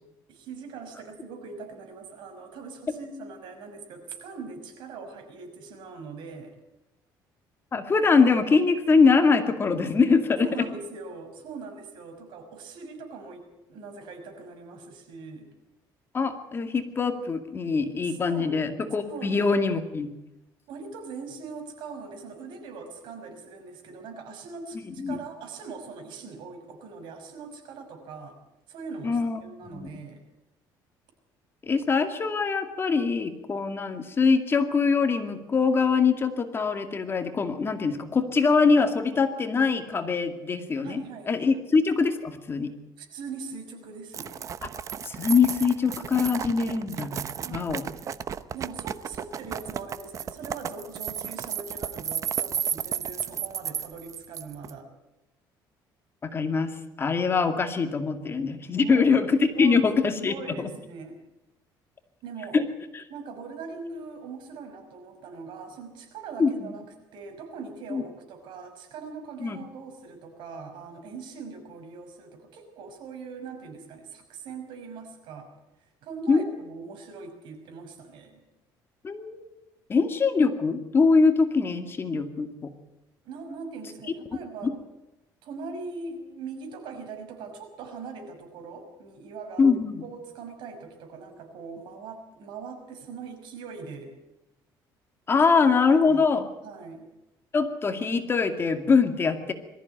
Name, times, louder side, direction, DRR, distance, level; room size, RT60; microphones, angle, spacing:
voice 1, 0.3-6.5 10.4-15.5 18.0-18.7 19.1-19.4 20.7-28.4 28.7-30.2 40.8-41.4 43.0-44.4 46.6-46.8 47.4-47.8 48.5-54.9 58.7-59.1 59.4-59.9 60.2-61.2 62.2-62.6 63.1-75.5 75.8-78.4 83.2-84.8 85.4-89.7 90.0-94.2 95.6-96.3 96.6-97.1, right 4 dB, 75° right, 5 dB, 5.8 m, -41 dB
voice 2, 7.7-10.5 16.1-20.1 25.0-25.2 29.0-29.4 29.7-30.0 31.6-41.0 41.3-42.7 45.0-47.2 47.5-47.8 56.2-60.7 62.5-62.7 62.9-63.0 66.4-66.7 67.9-68.0 69.4-69.6 76.3-76.5 79.0-79.5 79.9-82.7 84.6-84.7 89.6-90.0 95.3-96.4 97.5-99.5, left 4 dB, 30° left, 7 dB, 2.2 m, -23 dB
sound 1, 44.1-54.7, right 8 dB, 40° right, 0.9 m, -33 dB
22.5 x 14.5 x 9.2 m, 0.95 s
cardioid pair, 130°, 8 cm